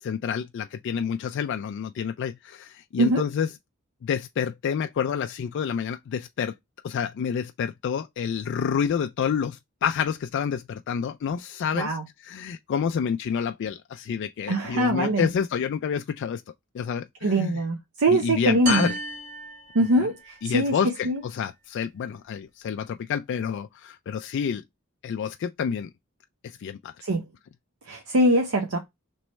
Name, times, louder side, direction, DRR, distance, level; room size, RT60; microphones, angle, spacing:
voice 1, 0.0-3.5 4.0-6.5 6.8-12.0 12.2-16.4 16.7-17.5 18.1-18.9 20.0-20.1 20.4-24.6 25.0-25.9 26.4-26.9, left 7 dB, 60° left, 0.3 m, -28 dB
voice 2, 14.5-15.3 17.2-18.9 19.7-20.7 21.0-21.2 27.0-27.2 27.9-28.8, right 1 dB, 75° right, 0.7 m, -23 dB
sound 1, 18.7-20.4, right 2 dB, 40° right, 1.2 m, -34 dB
4.4 x 3.1 x 3.1 m
head